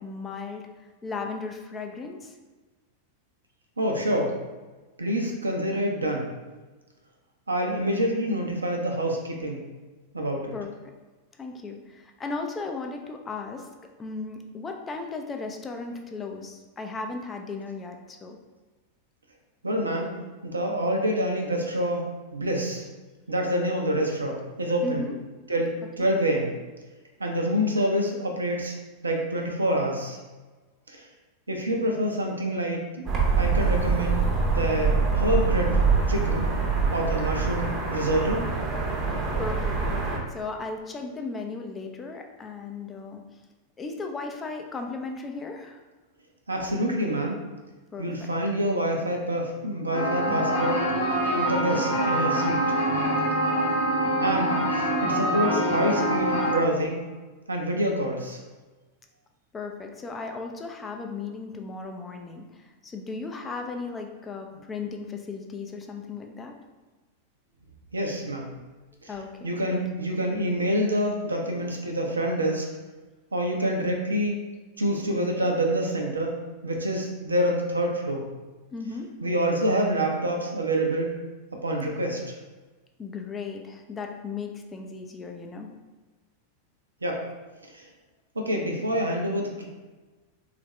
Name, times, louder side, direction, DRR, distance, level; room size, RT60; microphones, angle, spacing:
voice 1, 0.0-2.3 10.5-10.7 11.4-13.7 14.0-18.4 24.8-25.2 26.0-26.1 39.4-43.2 43.8-45.8 47.9-48.3 59.5-66.5 69.1-69.7 78.7-79.1 83.0-85.7, left 4 dB, 20° left, 3 dB, 0.4 m, -36 dB
voice 2, 3.8-4.3 5.0-6.3 7.5-9.6 10.1-10.5 19.6-20.1 20.4-22.8 23.3-25.1 25.5-26.5 27.2-28.7 29.0-30.2 30.9-31.1 31.5-33.0 33.4-34.3 34.5-35.8 36.1-36.5 36.9-38.4 46.5-47.4 48.0-50.8 51.3-52.8 54.2-57.0 57.5-58.4 67.9-68.5 69.0-69.1 69.4-72.7 73.3-74.4 74.8-76.3 76.6-78.2 79.2-81.1 81.6-82.3 87.0-87.2 87.7-87.9 88.4-89.7, equal, 80° right, 1 dB, 0.5 m, -27 dB
sound 1, 33.1-40.2, right 4 dB, 25° right, 0.7 m, -24 dB
sound 2, 49.9-56.5, right 1 dB, 85° left, 0.8 m, -25 dB
3.4 x 2.4 x 3.0 m, 1.2 s
figure-of-eight pair, 90°, 0 cm